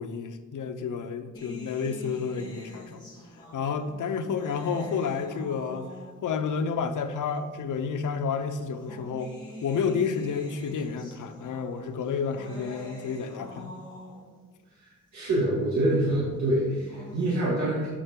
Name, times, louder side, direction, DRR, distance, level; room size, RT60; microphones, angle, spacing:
voice 1, 0.0-3.0 3.5-5.9 6.2-9.3 9.6-13.8, left 6 dB, 80° left, 8 dB, 0.7 m, -30 dB
sound 1, 1.3-6.4 7.4-7.5 8.5-14.4 16.6-17.3, equal, 15° left, 1.9 m, -45 dB
voice 2, 15.1-17.9, right 1 dB, 70° right, -7 dB, 2.2 m, -25 dB
8.6 x 6.4 x 3.7 m, 1.3 s
wide cardioid pair, 160°, 31 cm